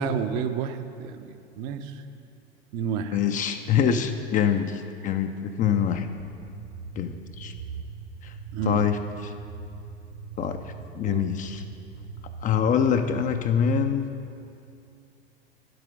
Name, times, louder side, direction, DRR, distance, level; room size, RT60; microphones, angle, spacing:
voice 1, 0.0-2.0 2.7-3.2 3.8-4.0 8.5-8.9 11.0-11.3, right 6 dB, 45° right, 8 dB, 0.7 m, -30 dB
voice 2, 3.1-6.1 6.9-7.5 8.2-8.3 8.6-9.3 10.4-11.6 12.4-14.0, left 8 dB, 25° left, 7 dB, 0.4 m, -25 dB
sound 1, 6.0-13.4, right 5 dB, 65° right, 1.6 m, -41 dB
10.5 x 8.0 x 5.0 m, 2.6 s
figure-of-eight pair, 80°, 33 cm